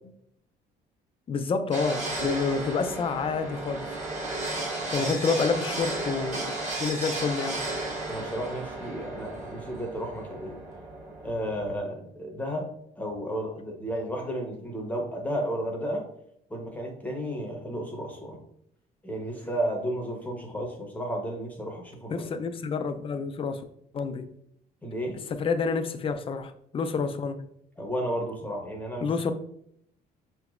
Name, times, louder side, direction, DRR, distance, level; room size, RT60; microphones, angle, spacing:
voice 1, 1.3-4.0 4.9-6.5 6.8-7.6 22.1-23.6 23.9-24.3 25.3-27.5 29.0-29.3, left 5 dB, 35° left, 9 dB, 0.4 m, -28 dB
sound 1, 1.7-11.8, right 2 dB, 45° right, 1.6 m, -34 dB
voice 2, 4.8-5.1 8.1-10.6 11.2-12.7 13.0-16.0 16.5-18.4 19.0-22.3 24.8-25.2 27.8-29.1, equal, 10° left, 0 dB, 0.8 m, -33 dB
5.6 x 3.0 x 2.4 m, 0.72 s
cardioid pair, 110°, 17 cm